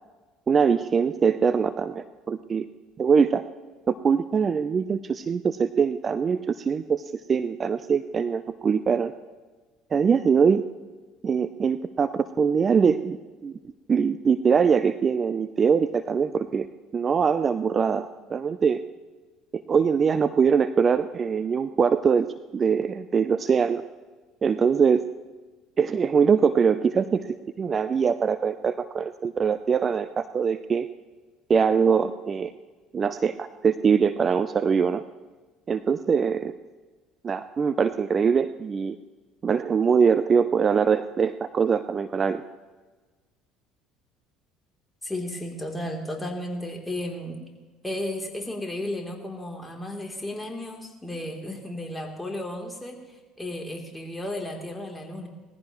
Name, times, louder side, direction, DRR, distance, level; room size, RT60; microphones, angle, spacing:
voice 1, 0.5-2.7 3.0-3.4 3.9-9.1 9.9-10.6 11.2-13.2 13.4-13.6 13.9-16.7 16.9-18.8 19.5-22.3 22.5-23.8 24.4-25.0 25.8-30.9 31.5-32.5 32.9-35.0 35.7-36.5 37.2-39.0 39.4-42.4, right 6 dB, 35° right, 13 dB, 0.6 m, -23 dB
voice 2, 45.0-47.4 47.8-55.3, left 1 dB, 10° left, 1 dB, 3.2 m, -34 dB
20.0 x 15.0 x 3.1 m, 1.3 s
hypercardioid pair, 65°, 0 cm